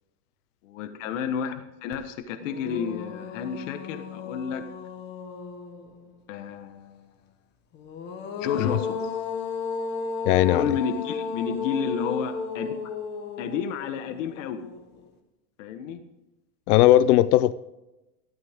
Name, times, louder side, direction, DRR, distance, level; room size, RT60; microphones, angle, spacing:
voice 1, 0.6-1.5 1.8-4.6 6.3-7.1 8.4-9.1 10.5-12.7 13.4-14.6 15.6-16.0, left 7 dB, 55° left, 7 dB, 1.4 m, -31 dB
sound 1, 1.9-2.0 2.4-6.1 7.7-15.0, left 5 dB, 25° left, 1.3 m, -34 dB
voice 2, 10.3-10.7 16.7-17.5, left 14 dB, 85° left, 17 dB, 0.6 m, -18 dB
14.5 x 13.0 x 3.7 m, 0.99 s
supercardioid pair, 175°, 44 cm